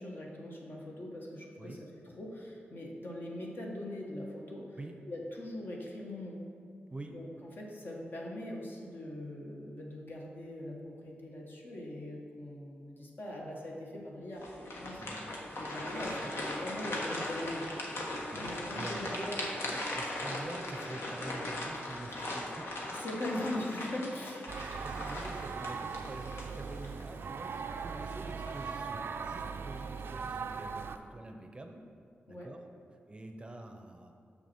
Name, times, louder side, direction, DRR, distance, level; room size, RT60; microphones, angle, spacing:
voice 1, 0.0-1.8 2.0-4.8 5.1-6.4 7.1-7.3 7.6-14.4 14.8-17.9 18.3-19.4 22.9-24.7 32.3-32.5, left 1 dB, 55° left, -1 dB, 1.3 m, -41 dB
sound 1, 14.4-27.0 27.5-27.6 28.2-28.7, left 1 dB, 75° left, 1.2 m, -39 dB
voice 2, 18.3-19.3 19.6-23.0 24.6-31.8 32.3-32.6 33.1-34.2, right 2 dB, 25° right, 4 dB, 0.6 m, -46 dB
sound 2, 24.5-31.0, right 5 dB, 70° right, 0.3 m, -39 dB
6.5 x 6.0 x 4.4 m, 2.4 s
wide cardioid pair, 90°, 4 cm